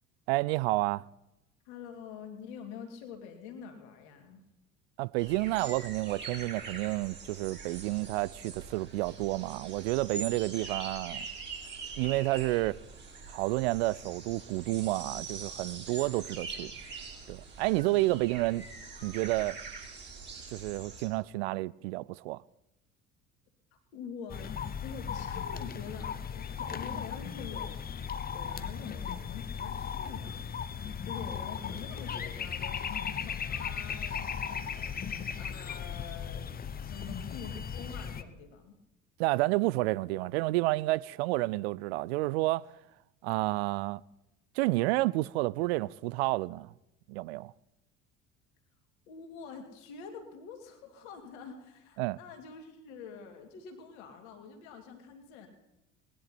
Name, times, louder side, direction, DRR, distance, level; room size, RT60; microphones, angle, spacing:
voice 1, 0.3-1.0 5.0-11.3 12.0-12.8 13.3-16.7 17.3-18.7 19.0-19.6 20.5-22.4 39.2-42.7 43.2-44.0 44.6-46.7 47.1-47.5 52.0-52.2, right 20 dB, 55° right, 0.5 m, -30 dB
voice 2, 1.6-4.4 23.7-24.5 24.8-36.5 36.8-38.8 49.1-55.5, left 6 dB, 60° left, 2.7 m, -46 dB
sound 1, 5.2-21.1, right 4 dB, 25° right, 3.7 m, -43 dB
sound 2, 24.3-38.2, left 7 dB, 25° left, 0.9 m, -37 dB
19.5 x 11.0 x 4.3 m
figure-of-eight pair, 60°, 38 cm